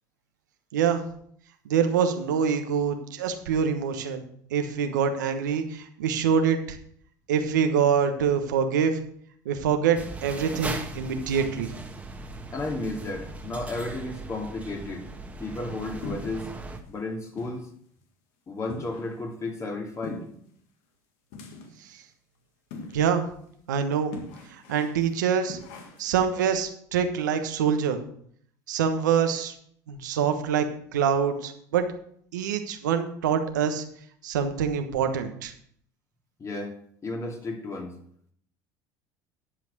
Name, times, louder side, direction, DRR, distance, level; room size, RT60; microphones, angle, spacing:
voice 1, 1.6-4.2 4.5-6.8 7.3-9.0 9.4-11.7 22.9-23.2 23.7-24.1 24.5-25.6 26.0-28.0 28.7-29.5 29.9-30.7 30.9-31.8 32.3-33.8 34.2-35.5, right 7 dB, 85° right, 6 dB, 1.2 m, -25 dB
sound 1, 9.9-16.8, right 2 dB, 15° right, 1.5 m, -38 dB
voice 2, 12.5-15.1 15.4-16.5 16.9-17.7 18.5-20.2 36.4-36.8 37.0-37.9, left 2 dB, 30° left, 2 dB, 2.6 m, -33 dB
sound 2, 16.0-16.6 17.0-17.1 17.4-17.6 18.0-18.1 18.7-19.3 20.0-20.5 21.3-21.9 22.7-23.1 23.5-23.6 24.1-25.1 25.5-26.2, left 3 dB, 70° left, 1.6 m, -41 dB
11.5 x 5.3 x 6.2 m, 0.64 s
hypercardioid pair, 80°, 10 cm